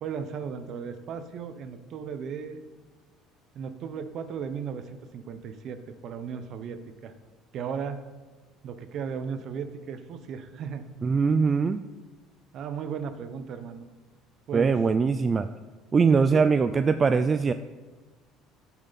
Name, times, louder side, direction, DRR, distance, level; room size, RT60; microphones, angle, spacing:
voice 1, 0.0-2.6 3.5-7.1 7.5-8.0 8.6-10.8 12.5-13.8 14.5-14.7 16.3-16.4, right 6 dB, 50° right, 10 dB, 0.9 m, -36 dB
voice 2, 11.0-11.8 14.5-15.5 15.9-17.5, right 5 dB, 25° right, 10 dB, 0.3 m, -22 dB
15.0 x 7.2 x 4.1 m, 1.4 s
cardioid pair, 140°, 0 cm